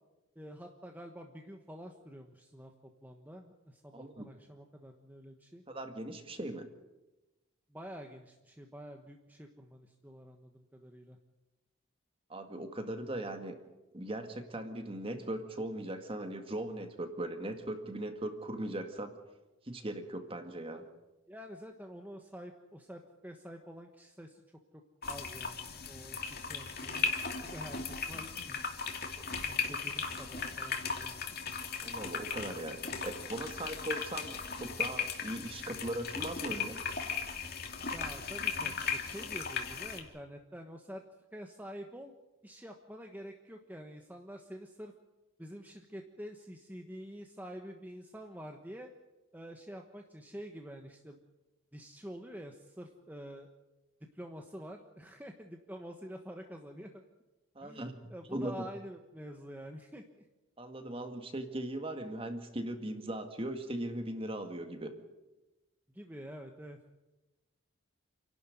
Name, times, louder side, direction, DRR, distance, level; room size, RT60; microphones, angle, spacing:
voice 1, 0.3-5.6 7.7-11.2 21.3-24.4 25.1-27.1 27.4-28.6 29.4-31.3 37.9-41.0 41.3-42.1 42.4-44.9 45.4-48.9 49.3-51.2 51.7-53.5 54.0-57.0 57.6-60.2 65.9-66.8, equal, 10° right, 3 dB, 1.2 m, -47 dB
voice 2, 3.9-4.3 5.7-6.7 12.3-13.6 13.9-19.1 19.6-20.8 31.8-36.8 57.6-57.9 58.3-58.7 60.6-64.9, right 1 dB, 25° right, 7 dB, 2.0 m, -39 dB
sound 1, 25.0-40.0, left 5 dB, 45° left, 2.8 m, -37 dB
29.0 x 12.0 x 9.3 m, 1.1 s
head